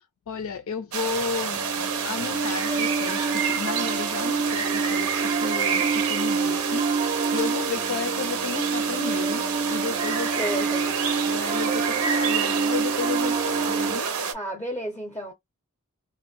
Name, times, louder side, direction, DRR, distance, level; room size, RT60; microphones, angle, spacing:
voice 1, 0.0-10.5 11.3-14.1, left 5 dB, 70° left, 0.4 m, -33 dB
sound 1, 0.9-14.3, right 6 dB, 80° right, 0.7 m, -28 dB
Piano, 1.5-14.0, right 4 dB, 25° right, 0.3 m, -28 dB
voice 2, 10.4-10.9 11.9-12.1 14.3-15.3, right 1 dB, 10° left, 0.6 m, -32 dB
2.5 x 2.1 x 3.5 m
head